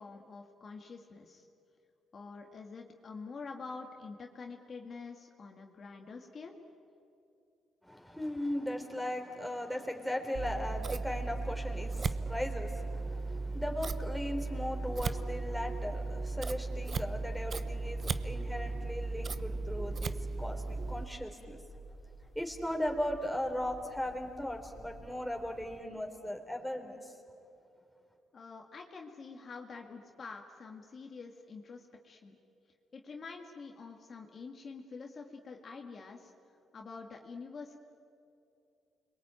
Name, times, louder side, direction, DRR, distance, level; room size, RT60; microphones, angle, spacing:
voice 1, 0.0-1.5 2.1-6.6 28.3-32.4 32.9-36.3 36.7-37.8, left 4 dB, 45° left, 2 dB, 2.0 m, -47 dB
voice 2, 7.9-21.6 22.4-27.0, left 1 dB, ahead, 2 dB, 3.9 m, -37 dB
Scissors, 10.3-21.0, right 3 dB, 40° right, 0.9 m, -36 dB
sound 1, 16.9-25.8, equal, 20° left, 3.2 m, -53 dB
29.5 x 22.5 x 9.1 m, 2.6 s
cardioid pair, 90°, 0 cm